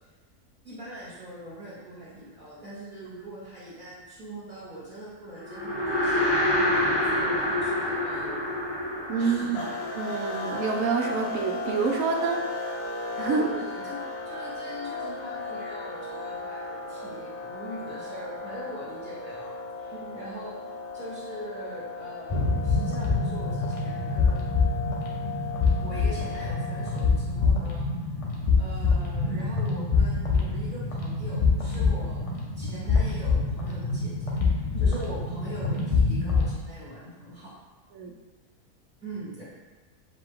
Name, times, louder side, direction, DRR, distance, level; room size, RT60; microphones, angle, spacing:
voice 1, 0.6-8.5 9.2-9.6 13.2-14.0 14.2-24.7 25.7-27.9 28.6-32.3 32.6-37.5 39.0-39.4, right 1 dB, 35° right, -10 dB, 1.8 m, -41 dB
sound 1, 5.4-10.9, left 1 dB, 20° left, 0.7 m, -27 dB
voice 2, 9.1-9.6 10.0-12.4 13.2-13.5 19.9-20.2 34.7-34.9 37.9-38.1, right 5 dB, 75° right, 3 dB, 1.0 m, -28 dB
sound 2, 9.5-27.4, left 2 dB, 85° left, 1.2 m, -36 dB
sound 3, 22.3-36.5, left 4 dB, 45° left, 0.4 m, -26 dB
5.0 x 2.5 x 3.6 m, 1.3 s
omnidirectional pair, 1.5 m